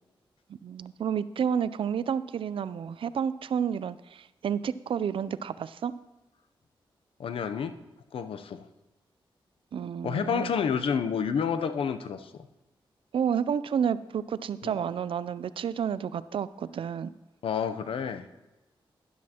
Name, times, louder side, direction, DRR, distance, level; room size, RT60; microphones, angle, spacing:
voice 1, 0.5-6.0 9.7-10.5 13.1-17.1, right 8 dB, 70° right, 16 dB, 0.4 m, -30 dB
voice 2, 7.2-7.8 8.1-8.7 10.0-12.3 14.6-14.7 17.4-18.3, left 6 dB, 80° left, 10 dB, 0.6 m, -29 dB
12.5 x 11.0 x 2.9 m, 1.0 s
cardioid pair, 75°, 9 cm